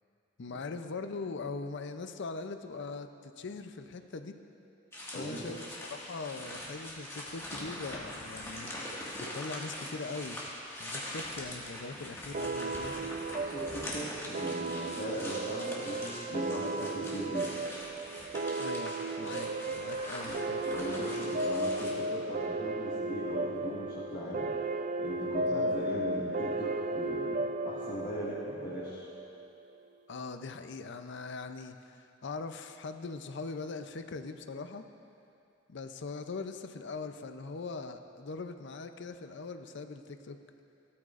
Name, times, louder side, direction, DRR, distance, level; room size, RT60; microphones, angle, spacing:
voice 1, 0.4-4.3 5.1-8.7 9.2-10.4 10.8-12.9 18.6-19.5 19.8-20.6 25.5-25.7 30.1-34.8 35.7-40.4, left 4 dB, 65° left, 8 dB, 0.6 m, -41 dB
sound 1, 4.9-21.9, left 1 dB, 15° left, 1.8 m, -43 dB
voice 2, 5.1-5.5 13.4-17.5 19.2-19.4 20.3-20.4 20.7-24.5 25.0-29.1, equal, 45° left, -8 dB, 1.7 m, -39 dB
sound 2, 12.3-29.4, right 2 dB, 40° right, 0.4 m, -35 dB
16.5 x 13.0 x 2.5 m, 2.7 s
head